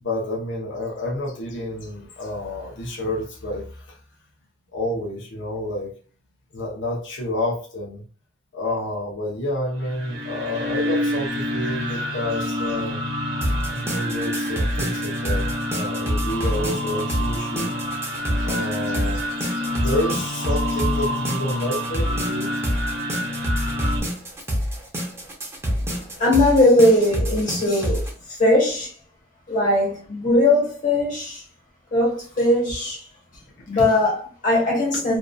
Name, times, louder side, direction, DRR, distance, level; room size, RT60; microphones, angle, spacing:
voice 1, 0.0-4.0 4.7-5.9 6.5-8.0 8.5-13.0 13.7-17.7 18.4-22.5, left 1 dB, 70° left, 0.7 m, -29 dB
sound 1, 9.7-24.0, equal, 55° right, 1.0 m, -28 dB
sound 2, 13.4-28.1, equal, 15° right, 0.7 m, -27 dB
voice 2, 26.2-28.0 28.4-28.9 29.5-31.4 31.9-33.0 33.7-35.2, left 1 dB, 45° left, 1.3 m, -19 dB
2.6 x 2.5 x 2.2 m
head